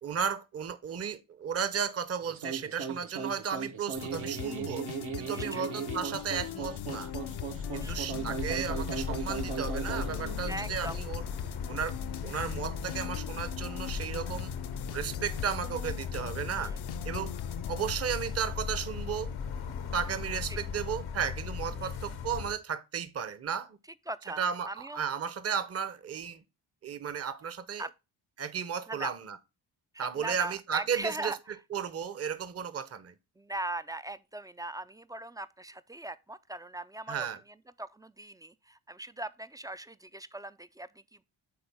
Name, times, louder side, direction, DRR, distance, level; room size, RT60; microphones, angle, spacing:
voice 1, 0.0-4.8 5.2-7.1 7.7-11.2 11.7-12.0 12.2-14.5 14.9-16.7 17.0-17.3 17.7-19.3 19.9-23.8 24.4-24.7 24.9-26.4 26.8-27.8 28.4-29.4 30.0-31.3 31.7-33.1 37.1-37.4, right 7 dB, 30° right, 0.7 m, -34 dB
sound 1, 2.2-10.6, right 7 dB, 70° right, 1.3 m, -37 dB
sound 2, 3.9-18.0, left 11 dB, 55° left, 0.6 m, -41 dB
voice 2, 5.3-5.7 7.8-8.1 10.5-11.0 16.5-16.8 20.5-20.6 21.7-21.9 24.1-25.0 27.8-27.9 28.9-29.1 29.9-31.4 33.4-41.2, right 2 dB, 10° right, 0.3 m, -40 dB
sound 3, 5.9-22.5, left 6 dB, 80° left, 1.1 m, -38 dB
9.5 x 3.9 x 3.4 m
supercardioid pair, 40°, 50 cm